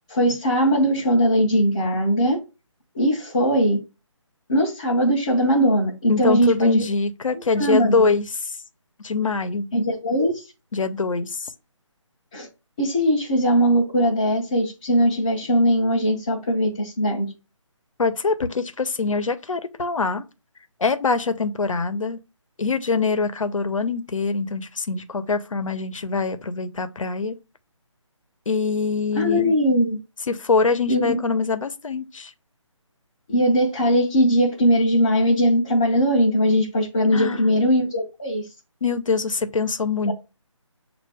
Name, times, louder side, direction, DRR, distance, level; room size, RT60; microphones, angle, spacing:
voice 1, 0.1-2.4 2.9-3.8 4.5-6.8 7.5-8.1 9.7-10.4 12.3-12.5 12.8-17.3 29.1-30.0 30.9-31.2 33.3-38.5, equal, 15° left, 0.4 m, -20 dB
voice 2, 6.1-8.6 9.0-9.7 10.7-11.5 18.0-20.2 20.8-22.2 22.6-27.4 28.5-29.5 30.3-32.3 37.1-37.4 38.8-40.1, left 4 dB, 80° left, 0.7 m, -24 dB
6.4 x 2.4 x 3.4 m
figure-of-eight pair, 165°, 17 cm